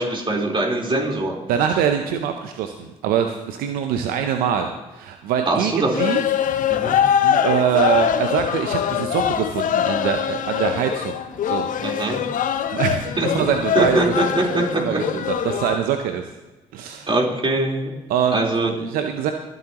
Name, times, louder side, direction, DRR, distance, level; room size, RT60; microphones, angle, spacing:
voice 1, 0.0-1.4 5.5-6.0 6.7-7.0 11.8-12.2 13.2-13.5 13.7-15.0 17.1-17.9 18.3-18.7, right 2 dB, 35° right, -2 dB, 4.0 m, -22 dB
voice 2, 1.5-6.2 7.2-11.7 12.7-14.3 14.6-16.3 16.7-17.1 18.1-18.5 18.8-19.3, right 8 dB, 80° right, 6 dB, 0.7 m, -24 dB
sound 1, 5.9-15.8, left 9 dB, 65° left, 0.8 m, -23 dB
22.5 x 7.9 x 3.0 m, 1.1 s
hypercardioid pair, 50°, 15 cm